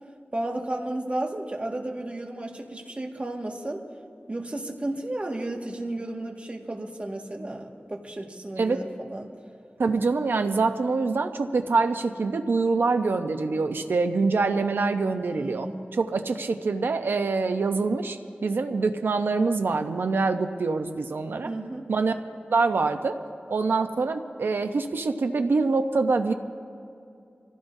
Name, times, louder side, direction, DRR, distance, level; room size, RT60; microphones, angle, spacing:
voice 1, 0.3-3.8 4.3-9.3 15.3-15.9 21.4-21.9, right 1 dB, 35° right, 1 dB, 1.8 m, -33 dB
voice 2, 9.8-21.5 21.9-22.1 22.5-23.2 23.5-26.3, right 4 dB, 85° right, 7 dB, 0.8 m, -25 dB
25.5 x 16.0 x 2.7 m, 2.5 s
wide cardioid pair, 65°, 4 cm